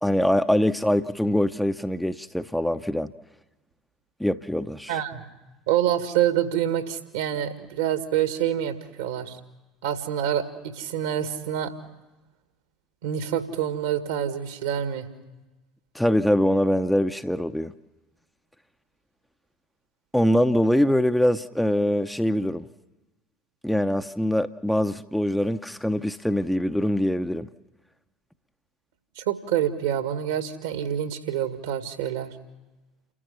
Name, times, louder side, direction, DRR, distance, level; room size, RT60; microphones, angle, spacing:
voice 1, 0.0-3.1 4.2-5.0 15.9-17.7 20.1-22.7 23.6-27.5, equal, ahead, 0.7 m, -23 dB
voice 2, 4.9-5.2 5.7-9.4 9.8-11.7 13.0-15.1 29.2-32.4, right 10 dB, 65° right, 1.9 m, -27 dB
29.0 x 14.5 x 7.0 m
figure-of-eight pair, 65°, 0 cm